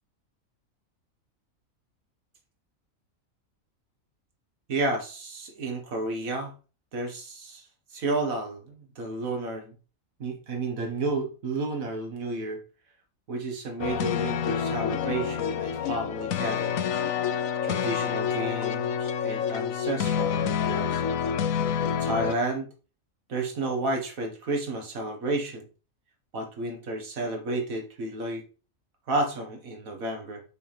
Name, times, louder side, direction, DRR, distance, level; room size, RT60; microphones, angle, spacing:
voice 1, 4.7-6.5 6.9-9.8 10.2-12.6 13.3-17.0 17.6-21.0 21.9-22.7 23.3-25.7 26.3-28.5 29.1-30.4, right 2 dB, 85° right, 3 dB, 2.0 m, -31 dB
sound 1, 13.8-22.3, left 8 dB, 80° left, 1.1 m, -28 dB
6.6 x 6.3 x 3.4 m, 0.36 s
omnidirectional pair, 1.4 m